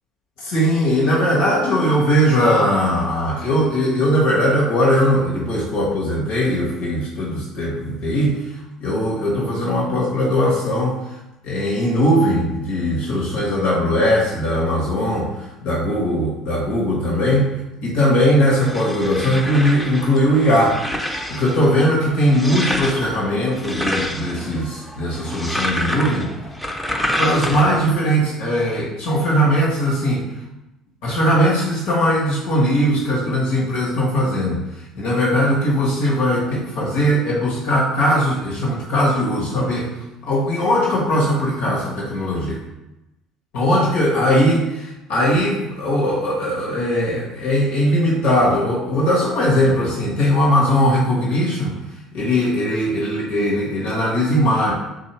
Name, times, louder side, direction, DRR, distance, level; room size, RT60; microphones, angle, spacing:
voice 1, 0.4-8.4 8.8-11.2 11.4-17.5 17.8-20.8 21.3-26.3 27.2-30.2 31.0-34.6 34.9-39.9 40.2-42.6 43.5-51.7 52.1-54.7, equal, 85° left, -5 dB, 1.3 m, -19 dB
sound 1, 18.3-27.9, equal, 5° left, 0.4 m, -28 dB
3.5 x 2.7 x 4.3 m, 0.94 s
cardioid pair, 150°, 0 cm